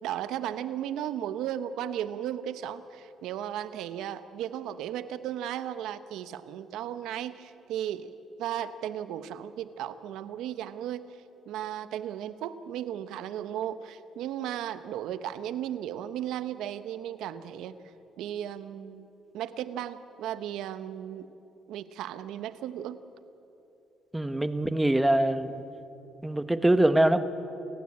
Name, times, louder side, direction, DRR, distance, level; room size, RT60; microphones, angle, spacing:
voice 1, 0.0-8.1 8.4-11.1 11.5-17.7 18.2-19.1 19.3-21.3 21.7-23.0, right 10 dB, 80° right, 13 dB, 1.0 m, -35 dB
voice 2, 24.1-25.6 26.2-27.2, right 1 dB, 10° right, 11 dB, 1.4 m, -23 dB
28.5 x 16.0 x 8.6 m, 2.9 s
supercardioid pair, 75°, 0 cm